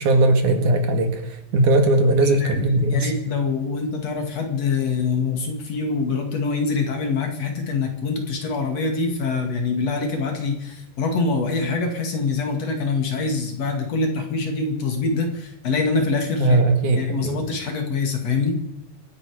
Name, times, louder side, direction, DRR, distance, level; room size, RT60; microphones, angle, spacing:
voice 1, 0.0-3.1 16.4-17.4, right 2 dB, 70° right, 6 dB, 3.3 m, -19 dB
voice 2, 2.2-16.6 16.9-18.6, left 4 dB, 55° left, 4 dB, 3.2 m, -25 dB
26.0 x 10.0 x 5.0 m, 0.78 s
omnidirectional pair, 3.8 m